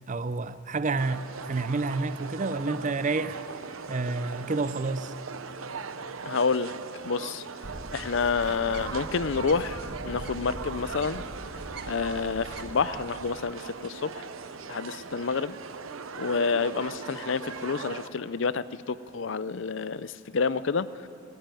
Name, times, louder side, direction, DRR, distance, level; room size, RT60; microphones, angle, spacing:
voice 1, 0.1-3.4 3.9-5.1, right 3 dB, 35° right, 0.5 m, -29 dB
sound 1, 1.0-18.1, right 5 dB, 80° right, 0.8 m, -39 dB
voice 2, 6.3-6.7 7.0-7.4 7.9-9.8 10.0-11.3 11.9-14.2 14.7-15.6 16.2-20.9, left 5 dB, 60° left, 0.5 m, -28 dB
Bird, 7.6-13.6, right 1 dB, 55° right, 1.2 m, -42 dB
19.5 x 15.5 x 9.1 m
head